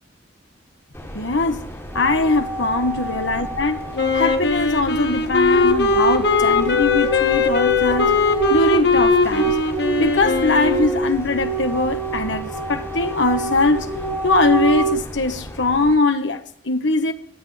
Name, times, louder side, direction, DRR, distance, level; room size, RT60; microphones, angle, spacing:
sound 1, 0.9-15.9, equal, 15° left, 3.2 m, -36 dB
voice 1, 1.1-1.7 1.9-3.8 4.1-8.2 8.5-9.6 10.0-13.9 14.2-17.1, left 3 dB, 75° left, 1.4 m, -21 dB
sound 2, 1.9-4.3 5.5-14.9, right 2 dB, 10° right, 2.3 m, -26 dB
Wind instrument woodwind instrument, 3.9-11.1, left 3 dB, 60° left, 1.6 m, -20 dB
24.5 x 8.8 x 3.3 m
head